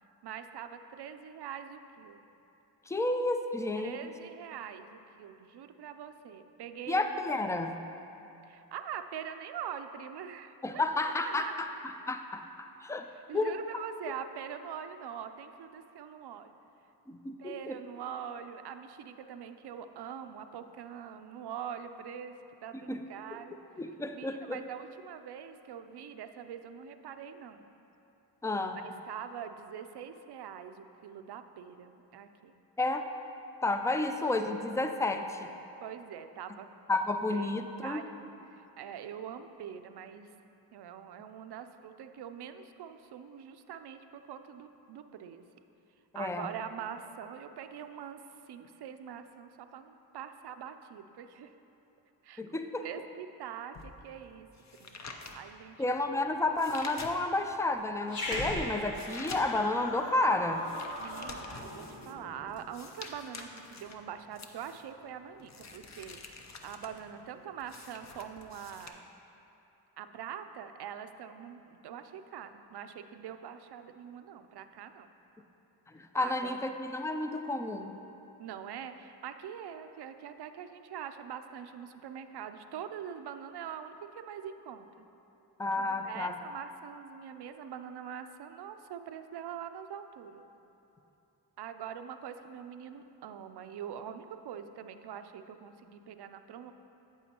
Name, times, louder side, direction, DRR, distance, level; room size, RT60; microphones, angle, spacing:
voice 1, 0.2-2.2 3.8-7.3 8.5-11.6 13.1-16.5 17.4-23.6 24.1-27.6 28.7-32.6 33.8-34.0 35.8-36.7 37.3-40.3 40.7-45.4 46.1-48.2 48.5-51.5 52.2-54.5 54.8-55.9 61.0-69.1 70.0-75.1 76.2-76.6 78.4-85.1 85.8-90.5 91.6-96.7, right 8 dB, 65° right, 9 dB, 0.5 m, -44 dB
voice 2, 2.9-4.1 6.9-7.8 10.6-11.5 12.1-13.1 13.3-13.6 17.1-17.7 22.9-23.0 23.8-24.6 28.4-28.8 32.8-33.0 33.6-35.5 36.9-38.0 46.1-46.5 52.4-52.9 55.8-60.7 75.9-77.9 85.6-86.3, left 2 dB, 10° left, 7 dB, 0.3 m, -31 dB
sound 1, 53.7-57.6 58.0-68.9, left 3 dB, 40° left, 0.7 m, -48 dB
Growling, 58.0-62.7, left 1 dB, 75° left, 1.5 m, -39 dB
8.4 x 8.3 x 2.9 m, 2.9 s
cardioid pair, 75°, 43 cm